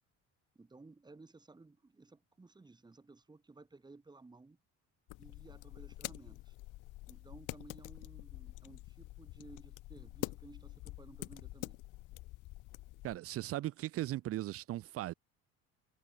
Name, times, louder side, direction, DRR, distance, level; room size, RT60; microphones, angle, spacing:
voice 1, 0.5-4.6 5.2-6.6 7.1-11.8, right 3 dB, 15° right, 4.1 m, -57 dB
sound 1, 5.1-13.2, left 18 dB, 70° left, 2.6 m, -47 dB
voice 2, 13.0-15.1, right 15 dB, 45° right, 0.7 m, -38 dB
cardioid pair, 145°, 33 cm